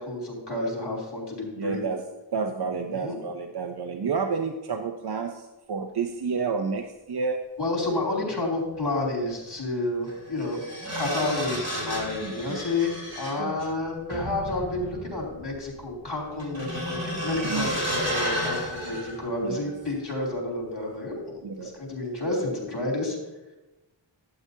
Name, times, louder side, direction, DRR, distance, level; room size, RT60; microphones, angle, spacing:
voice 1, 0.0-1.8 2.8-3.2 7.6-10.6 10.9-23.2, left 2 dB, 60° left, -2 dB, 3.0 m, -30 dB
voice 2, 1.6-2.0 2.3-7.4 12.2-12.6 13.4-13.6 17.5-17.7 19.4-19.6 21.4-21.7, right 5 dB, 55° right, 6 dB, 0.6 m, -30 dB
sound 1, 8.7-8.8 10.1-19.7 20.1-20.3, equal, 35° right, 2.9 m, -33 dB
11.5 x 8.8 x 2.7 m, 1.1 s
wide cardioid pair, 70°, 47 cm